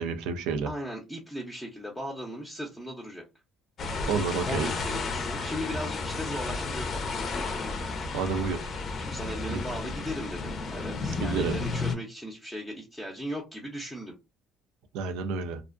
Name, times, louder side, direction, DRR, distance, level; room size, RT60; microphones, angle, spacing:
voice 1, 0.0-0.7 4.0-4.7 8.1-8.7 9.5-9.6 11.2-11.6 14.9-15.6, right 5 dB, 90° right, 0.5 m, -30 dB
voice 2, 0.6-3.2 4.4-7.1 9.0-14.1, equal, 5° left, 0.6 m, -37 dB
sound 1, 3.8-12.0, left 3 dB, 45° left, 0.5 m, -32 dB
2.5 x 2.1 x 2.5 m
cardioid pair, 110°, 0 cm